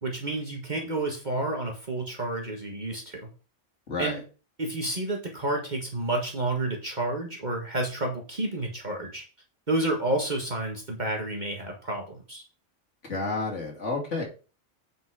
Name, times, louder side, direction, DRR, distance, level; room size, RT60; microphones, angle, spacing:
voice 1, 0.0-3.3 4.0-4.2 4.6-9.2 9.7-12.4, right 2 dB, 35° right, 1 dB, 1.7 m, -30 dB
voice 2, 3.9-4.2 13.0-14.2, left 3 dB, 70° left, 0 dB, 2.8 m, -30 dB
8.5 x 5.4 x 4.7 m, 0.35 s
omnidirectional pair, 1.3 m